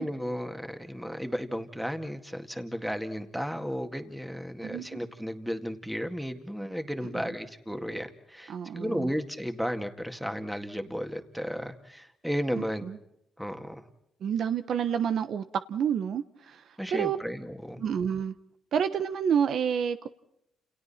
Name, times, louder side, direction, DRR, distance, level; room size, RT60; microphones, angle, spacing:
voice 1, 0.0-12.9 13.4-13.9 16.8-17.8, equal, ahead, 2.1 m, -34 dB
voice 2, 8.5-9.1 12.5-13.0 14.2-16.6 16.9-17.2 17.8-18.3 18.7-20.1, right 8 dB, 65° right, 1.0 m, -29 dB
30.0 x 28.5 x 4.3 m
cardioid pair, 95°, 0 cm